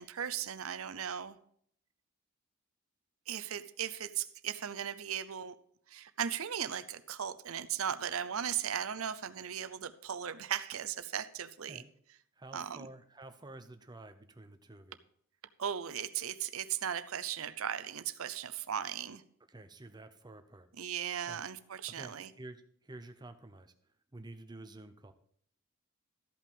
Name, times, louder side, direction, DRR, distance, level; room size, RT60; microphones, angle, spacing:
voice 1, 0.0-1.4 3.3-5.6 5.9-11.8 12.5-12.9 15.6-19.2 20.8-22.3, right 9 dB, 70° right, 12 dB, 0.6 m, -37 dB
voice 2, 12.3-15.0 19.5-20.7 21.2-21.4 21.9-25.1, right 2 dB, 20° right, 8 dB, 0.7 m, -50 dB
13.5 x 5.5 x 5.3 m, 0.65 s
head